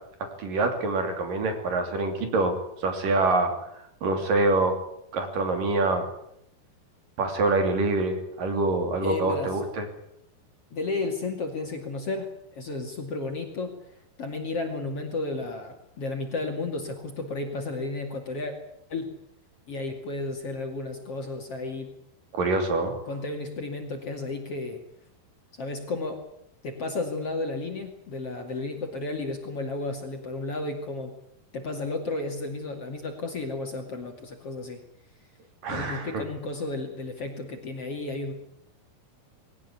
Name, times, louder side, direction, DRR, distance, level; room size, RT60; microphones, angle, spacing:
voice 1, 0.4-3.5 4.0-4.8 5.1-6.1 7.2-9.9 22.3-23.0 35.6-36.2, right 2 dB, 60° right, 6 dB, 4.6 m, -25 dB
voice 2, 9.0-9.6 10.7-13.7 14.2-18.5 18.9-19.1 19.7-21.9 23.1-24.8 25.6-26.2 26.6-31.1 31.5-34.8 35.7-38.3, left 3 dB, 40° left, 4 dB, 3.0 m, -33 dB
21.0 x 18.0 x 9.7 m, 0.76 s
omnidirectional pair, 4.6 m